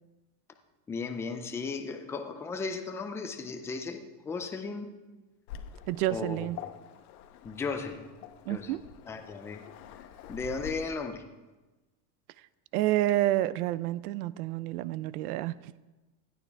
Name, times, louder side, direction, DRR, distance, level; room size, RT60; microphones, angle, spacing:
voice 1, 0.9-4.9 6.1-6.5 7.4-8.1 8.5-8.7 9.1-9.6 10.3-11.2, left 4 dB, 5° left, 6 dB, 0.3 m, -35 dB
Waves surf, 5.5-10.7, left 9 dB, 80° left, 1.1 m, -47 dB
voice 2, 5.9-6.6 8.5-8.8 12.7-15.8, right 15 dB, 80° right, 18 dB, 0.6 m, -29 dB
16.5 x 11.5 x 3.4 m, 1.2 s
supercardioid pair, 150°, 44 cm